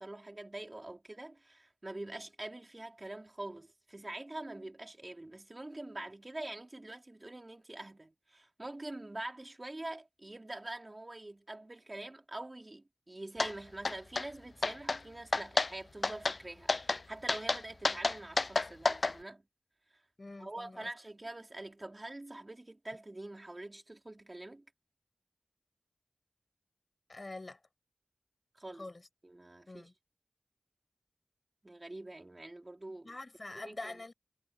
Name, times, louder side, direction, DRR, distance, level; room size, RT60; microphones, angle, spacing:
voice 1, 0.0-19.4 20.4-24.6 28.5-28.9 29.2-29.9 31.6-33.1 33.6-34.0, right 2 dB, 35° right, 4.5 m, -45 dB
sound 1, 13.4-13.5 13.8-14.3 14.6-15.0 15.3-15.7 16.0-16.4 16.7-17.0 17.3-19.1, left 3 dB, 65° left, 0.8 m, -30 dB
voice 2, 20.2-20.9 27.1-27.6 28.8-29.1 29.7-29.9 32.9-34.1, left 2 dB, 50° left, 6.4 m, -45 dB
cardioid pair, 40°, 0 cm